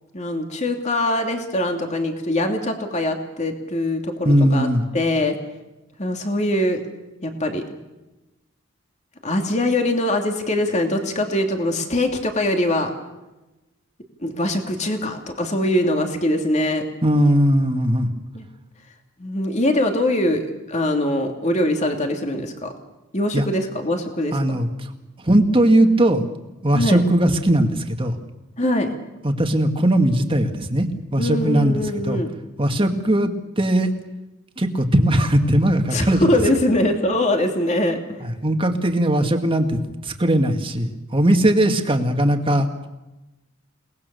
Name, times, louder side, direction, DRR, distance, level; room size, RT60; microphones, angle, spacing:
voice 1, 0.1-4.7 4.9-5.3 6.0-6.8 7.2-7.6 9.2-12.9 14.2-16.8 18.3-18.4 19.2-22.7 23.1-24.6 26.7-27.0 28.6-28.9 31.2-32.3 35.9-38.0, left 1 dB, 30° left, 3 dB, 2.7 m, -22 dB
voice 2, 4.2-4.8 17.0-18.1 23.3-23.4 24.3-24.7 25.2-26.2 26.6-28.2 29.2-30.9 31.1-32.2 32.6-33.9 34.6-36.3 38.2-42.9, right 1 dB, 25° right, 4 dB, 2.0 m, -19 dB
29.5 x 19.5 x 6.9 m, 1.0 s
head